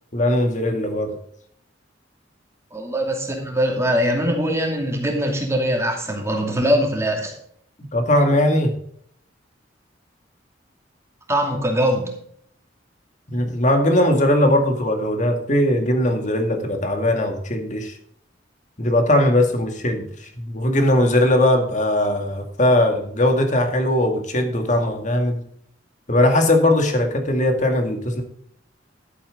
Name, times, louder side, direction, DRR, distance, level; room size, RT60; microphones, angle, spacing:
voice 1, 0.1-1.2 7.9-8.7 13.3-18.0 18.8-25.4 26.1-28.2, left 1 dB, 40° left, 5 dB, 2.1 m, -19 dB
voice 2, 2.7-7.3 11.3-12.1, equal, 15° right, 1 dB, 2.5 m, -22 dB
11.5 x 8.7 x 3.7 m, 0.65 s
head